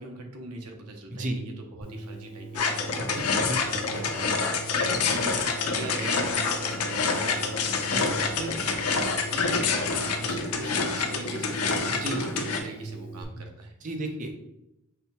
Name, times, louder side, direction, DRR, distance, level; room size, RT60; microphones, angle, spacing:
voice 1, 0.0-4.3 5.1-13.7, right 2 dB, 85° right, 3 dB, 0.8 m, -41 dB
voice 2, 1.1-1.4 3.0-3.8 7.9-8.1 12.0-12.5 13.8-14.4, right 1 dB, 35° right, 4 dB, 0.6 m, -33 dB
sound 1, 1.8-13.2, right 3 dB, 45° left, 1.3 m, -41 dB
sound 2, 2.5-12.6, left 4 dB, 80° left, 0.7 m, -27 dB
5.6 x 2.3 x 4.0 m, 0.88 s
head